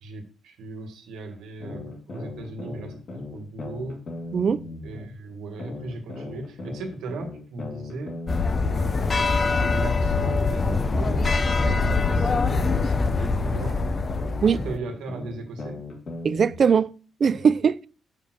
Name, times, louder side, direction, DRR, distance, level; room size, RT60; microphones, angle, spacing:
voice 1, 0.0-2.9 3.3-4.0 4.8-8.2 8.6-13.8 14.4-15.8, right 2 dB, 85° right, 1.5 m, -37 dB
sound 1, 1.6-5.1 5.6-9.1 9.6-13.1 13.6-16.5, left 2 dB, 50° left, 2.1 m, -37 dB
voice 2, 4.3-4.6 14.4-14.6 16.2-16.9 17.2-17.9, right 6 dB, 45° right, 0.3 m, -20 dB
sound 2, 8.3-14.8, left 4 dB, 30° left, 0.5 m, -23 dB
5.4 x 4.3 x 6.0 m
cardioid pair, 120°, 0 cm